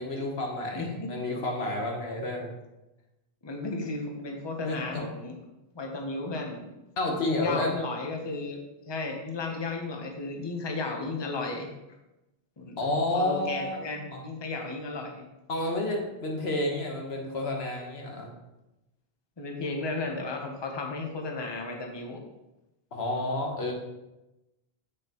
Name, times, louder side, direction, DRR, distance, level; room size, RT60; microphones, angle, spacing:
voice 1, 0.0-2.5 4.6-5.0 7.0-7.8 12.8-13.8 15.5-18.3 22.9-23.7, left 1 dB, 85° left, 0 dB, 1.5 m, -30 dB
voice 2, 0.7-1.1 3.4-5.4 5.7-6.7 7.2-8.6 8.9-11.7 12.6-12.9 13.1-15.3 19.4-22.2, left 3 dB, 25° left, 2 dB, 0.9 m, -34 dB
7.5 x 6.4 x 3.0 m, 0.97 s
omnidirectional pair, 1.0 m